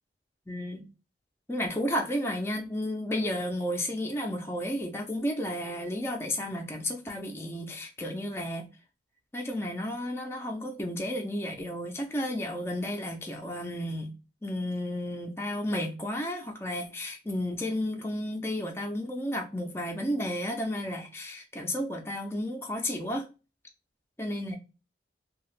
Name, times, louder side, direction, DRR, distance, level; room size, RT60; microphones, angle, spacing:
voice 1, 0.5-0.9 1.5-8.7 9.3-14.1 14.4-23.3 24.2-24.6, left 1 dB, 15° left, 0.4 m, -32 dB
2.7 x 2.3 x 3.2 m
head